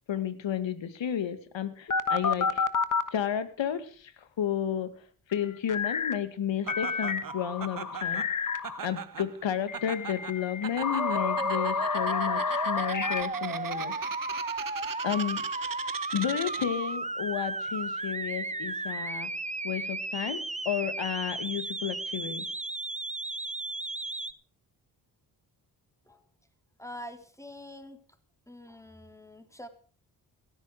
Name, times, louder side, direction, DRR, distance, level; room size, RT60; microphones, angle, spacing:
voice 1, 0.1-2.6 3.1-4.9 5.3-8.3 8.8-13.9 15.0-15.4 16.1-19.3 19.6-22.5, left 9 dB, 65° left, 12 dB, 2.2 m, -32 dB
sound 1, 1.9-3.1 5.7-6.2 6.7-8.8 9.7-13.2, left 5 dB, 40° left, 1.5 m, -30 dB
Laughter, 6.7-16.9, right 7 dB, 40° right, 1.3 m, -40 dB
sound 2, 11.0-24.3, right 2 dB, 15° right, 1.2 m, -34 dB
voice 2, 26.8-28.0 28.5-29.7, left 1 dB, 5° left, 7 dB, 3.8 m, -45 dB
17.0 x 14.0 x 4.9 m, 0.41 s
hypercardioid pair, 40°, 48 cm